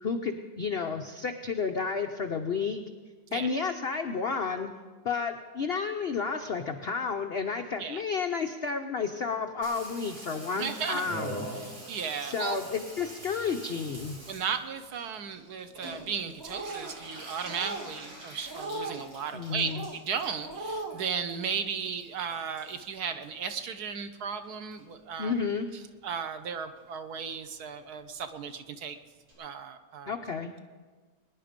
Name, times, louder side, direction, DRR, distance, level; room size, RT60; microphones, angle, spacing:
voice 1, 0.0-2.8 3.3-4.7 5.0-11.6 12.2-14.2 19.3-19.8 25.2-25.7 30.1-30.5, left 5 dB, 75° left, 6 dB, 0.5 m, -31 dB
Water tap faucet / Bathtub (filling or washing), 9.6-24.2 24.4-25.2 25.5-25.6 25.8-25.9 26.1-26.5 26.8-26.9 27.1-27.2 27.5-27.6 27.8-27.9 28.1-28.2 28.5-28.6 28.9-29.0 29.3-29.4, right 1 dB, 90° right, 4.7 m, -45 dB
voice 2, 10.5-11.0 11.7-12.6 14.3-25.5 25.7-29.0 29.4-30.2, right 6 dB, 65° right, 9 dB, 1.2 m, -35 dB
sound 1, 16.4-16.9 17.4-17.9 18.5-19.0 19.6-20.0 20.4-21.0, right 2 dB, 30° right, 0.4 m, -37 dB
21.5 x 10.0 x 5.2 m, 1.4 s
omnidirectional pair, 2.0 m